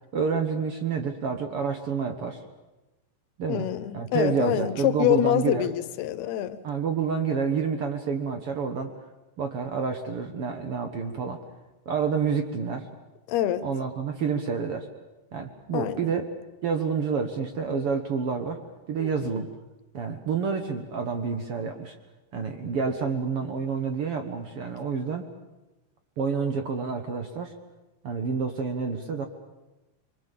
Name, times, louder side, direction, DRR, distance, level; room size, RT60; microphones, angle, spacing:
voice 1, 0.1-2.4 3.4-3.7 3.9-5.7 6.6-8.9 9.4-11.4 11.8-12.9 13.6-14.9 15.3-16.2 16.6-18.6 18.9-19.5 19.9-21.9 22.3-25.3 26.2-27.5 28.0-29.3, right 5 dB, 70° right, 6 dB, 1.3 m, -28 dB
voice 2, 3.5-6.6 13.3-13.7 15.7-16.2 19.0-19.5, left 13 dB, 80° left, 13 dB, 2.9 m, -26 dB
25.0 x 24.5 x 7.5 m, 1.1 s
omnidirectional pair, 4.6 m